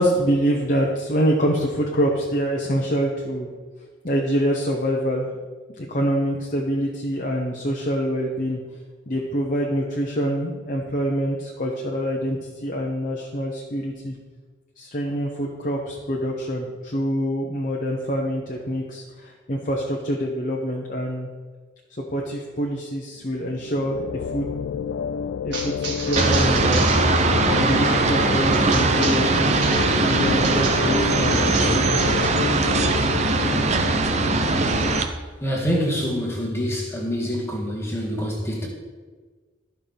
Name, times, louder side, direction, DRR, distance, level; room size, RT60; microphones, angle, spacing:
voice 1, 0.0-3.5 4.0-5.3 5.8-8.6 9.1-14.2 14.8-21.3 22.0-24.0 24.3-24.5 25.4-26.9 27.4-29.3 30.0-32.2, equal, 45° left, -1 dB, 1.0 m, -25 dB
sound 1, 23.4-35.0, left 7 dB, 75° left, 0.3 m, -29 dB
sound 2, 25.5-30.9 31.2-32.6, right 4 dB, 60° right, 2.0 m, -33 dB
sound 3, 26.2-35.0, right 3 dB, 35° right, 0.7 m, -20 dB
voice 2, 35.4-38.7, equal, 15° left, -2 dB, 1.7 m, -26 dB
14.0 x 5.9 x 3.5 m, 1.4 s
head